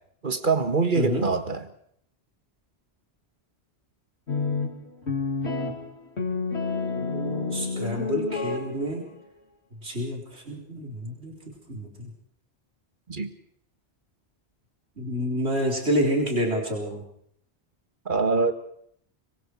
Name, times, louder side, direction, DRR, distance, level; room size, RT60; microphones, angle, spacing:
voice 1, 0.2-1.6 13.1-13.3 18.0-18.5, right 4 dB, 50° right, 8 dB, 1.8 m, -24 dB
voice 2, 1.0-1.3 6.9-9.1 9.8-11.3 11.7-12.1 15.0-17.0, equal, 75° right, -1 dB, 4.5 m, -28 dB
sound 1, 4.3-9.1, left 4 dB, 80° left, 3.2 m, -29 dB
25.5 x 22.5 x 4.7 m, 0.67 s
omnidirectional pair, 1.1 m